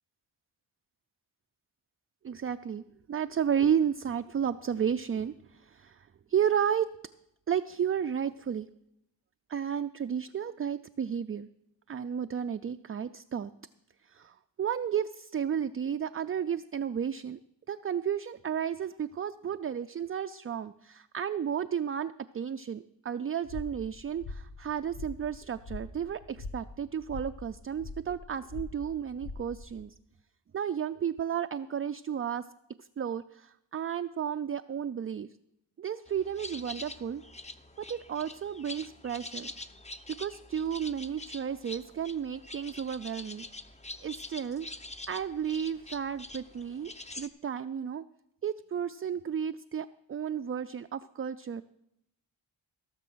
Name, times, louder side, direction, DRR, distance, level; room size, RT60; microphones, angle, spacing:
voice 1, 2.2-2.8 3.1-6.9 7.5-8.7 9.5-11.5 11.9-13.5 14.1-17.4 17.7-29.9 30.5-32.4 32.8-35.3 35.8-37.2 37.9-39.5 40.2-43.5 44.0-44.7 45.1-48.0 48.4-51.6, right 8 dB, 30° right, 10 dB, 0.3 m, -33 dB
sound 1, 23.4-29.8, left 3 dB, 65° left, 1.3 m, -43 dB
sound 2, 36.1-47.3, left 2 dB, 15° left, 0.8 m, -45 dB
16.0 x 6.7 x 6.2 m, 0.82 s
cardioid pair, 55°, 47 cm